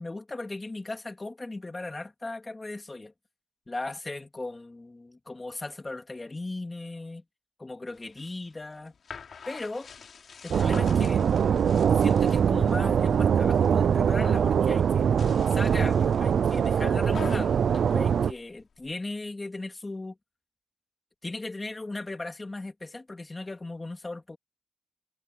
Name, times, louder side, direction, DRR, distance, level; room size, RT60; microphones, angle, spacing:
voice 1, 0.0-3.1 3.7-7.2 7.6-8.9 9.5-9.9 10.4-11.2 11.9-15.1 15.5-20.2 21.2-24.4, left 2 dB, 20° left, 2.8 m, -37 dB
sound 1, 7.9-12.8 13.2-13.8 14.0-14.5 15.0-18.9, left 6 dB, 65° left, 3.0 m, -45 dB
sound 2, 10.5-18.3, right 7 dB, 80° right, 0.4 m, -23 dB
wide cardioid pair, 140°, 0 cm